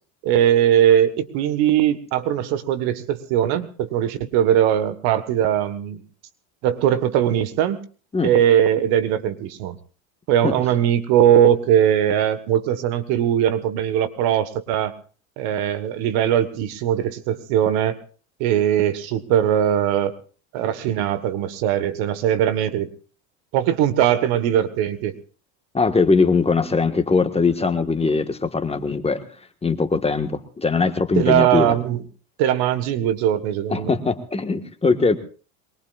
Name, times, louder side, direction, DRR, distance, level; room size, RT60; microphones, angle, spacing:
voice 1, 0.2-6.0 6.6-7.8 8.2-9.8 10.3-14.9 15.4-18.0 18.4-20.1 20.5-22.9 23.5-25.1 31.1-32.0 32.4-33.9, right 10 dB, 65° right, 13 dB, 1.5 m, -20 dB
voice 2, 25.7-29.2 29.6-31.7 33.7-35.2, left 4 dB, 15° left, 8 dB, 1.5 m, -21 dB
23.0 x 21.0 x 2.5 m, 0.37 s
supercardioid pair, 100°, 40 cm